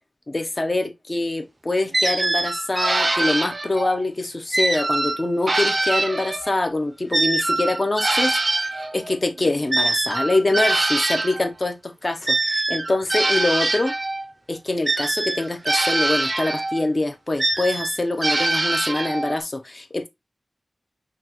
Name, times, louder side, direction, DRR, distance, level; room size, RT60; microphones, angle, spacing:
voice 1, 0.3-13.9 14.5-20.1, left 2 dB, 35° left, 0.7 m, -24 dB
sound 1, 1.9-4.0 4.5-6.6 7.1-11.5 12.3-14.2 14.9-16.8 17.4-19.4, right 2 dB, 35° right, 0.4 m, -23 dB
5.8 x 2.4 x 2.9 m
wide cardioid pair, 90°, 0 cm